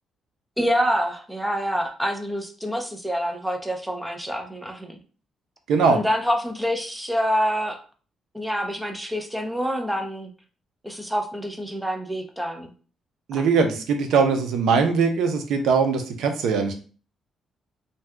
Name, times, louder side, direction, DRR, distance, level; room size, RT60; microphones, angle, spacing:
voice 1, 0.6-5.0 5.9-7.8 8.3-10.3 10.8-12.7, equal, ahead, 3 dB, 0.5 m, -26 dB
voice 2, 5.7-6.0 13.3-16.8, right 5 dB, 85° right, 5 dB, 0.6 m, -21 dB
2.7 x 2.2 x 3.4 m, 0.39 s
cardioid pair, 135°, 0 cm